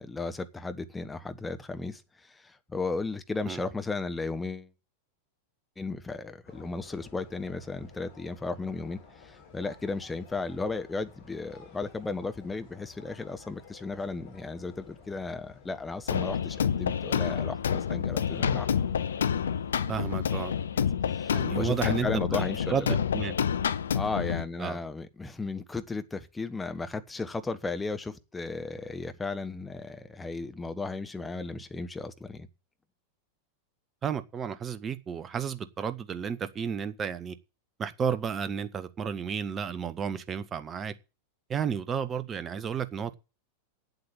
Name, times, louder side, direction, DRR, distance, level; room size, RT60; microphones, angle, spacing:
voice 1, 0.0-4.7 5.8-18.7 20.8-20.9 21.1-23.0 23.9-32.5, left 3 dB, 10° left, 1.1 m, -35 dB
sound 1, 6.4-20.1, left 6 dB, 50° left, 5.5 m, -53 dB
sound 2, 16.1-24.4, left 7 dB, 65° left, 0.6 m, -28 dB
voice 2, 19.9-20.5 21.3-22.4 22.7-22.9 23.1-23.4 24.6-24.8 34.0-37.4 37.8-40.9 41.5-43.1, right 7 dB, 25° right, 1.0 m, -32 dB
8.7 x 8.0 x 8.8 m
figure-of-eight pair, 90°, 0 cm